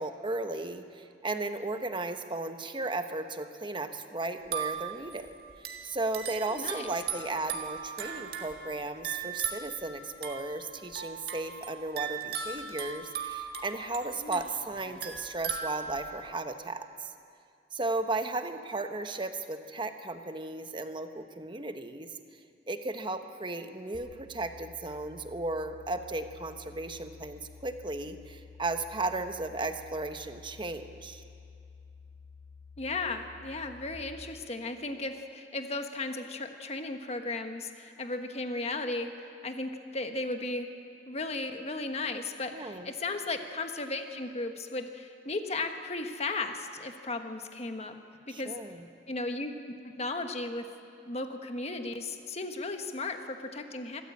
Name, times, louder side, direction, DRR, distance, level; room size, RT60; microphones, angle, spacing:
voice 1, 0.0-17.1 17.7-22.1 22.7-31.2 42.5-42.9 48.3-48.9, right 2 dB, 30° right, 7 dB, 1.1 m, -35 dB
sound 1, 4.4-16.3, right 7 dB, 60° right, 1.8 m, -38 dB
voice 2, 6.4-6.9 14.2-14.4 32.8-40.7 41.1-48.0 48.3-48.5 49.1-50.7 51.0-54.0, left 2 dB, 35° left, 6 dB, 1.3 m, -35 dB
sound 2, 23.9-34.0, left 5 dB, 80° right, 3.2 m, -52 dB
24.5 x 13.5 x 8.5 m, 2.4 s
head